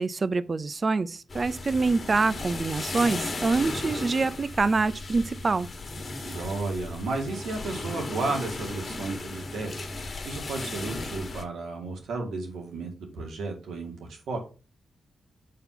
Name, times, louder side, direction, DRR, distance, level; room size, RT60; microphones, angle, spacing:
voice 1, 0.0-5.7, right 3 dB, 40° right, 0.5 m, -25 dB
sound 1, 1.3-11.4, left 2 dB, 45° left, 1.4 m, -36 dB
voice 2, 6.2-14.4, right 3 dB, 85° right, 2.3 m, -33 dB
5.5 x 4.3 x 5.8 m
cardioid pair, 70°, 0 cm